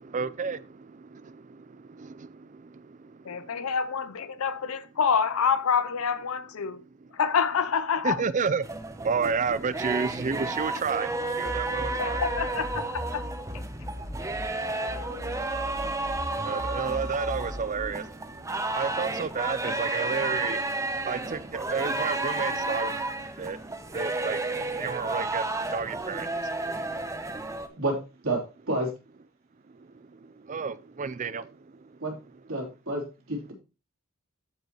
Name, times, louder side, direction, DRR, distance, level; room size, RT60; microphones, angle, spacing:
voice 1, 0.0-3.7 7.0-7.2 8.0-12.3 13.9-22.9 23.4-27.8 29.7-32.0, right 5 dB, 35° right, 0.5 m, -33 dB
voice 2, 3.3-6.8 7.1-8.2 12.0-13.3 14.6-15.4, left 6 dB, 75° left, 0.6 m, -27 dB
sound 1, 8.6-27.7, right 2 dB, 15° right, 0.8 m, -32 dB
sound 2, 11.5-14.5 14.9-17.9, left 1 dB, 15° left, 0.7 m, -38 dB
voice 3, 27.8-28.9 32.0-32.1 32.5-33.5, right 2 dB, 70° right, 3.6 m, -30 dB
14.5 x 5.4 x 3.0 m
head